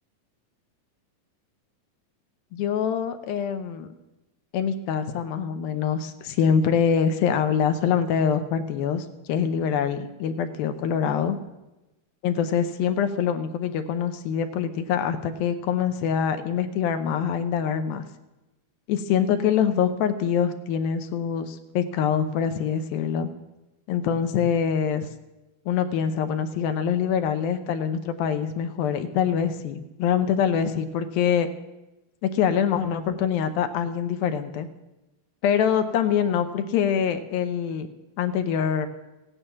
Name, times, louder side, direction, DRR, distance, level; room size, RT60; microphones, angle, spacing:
voice 1, 2.5-3.9 4.5-11.4 12.2-18.0 18.9-23.3 23.9-25.1 25.7-31.5 32.2-34.7 35.4-37.9 38.2-38.9, left 8 dB, 80° left, 8 dB, 2.5 m, -24 dB
16.0 x 10.0 x 5.7 m, 1.0 s
omnidirectional pair, 4.3 m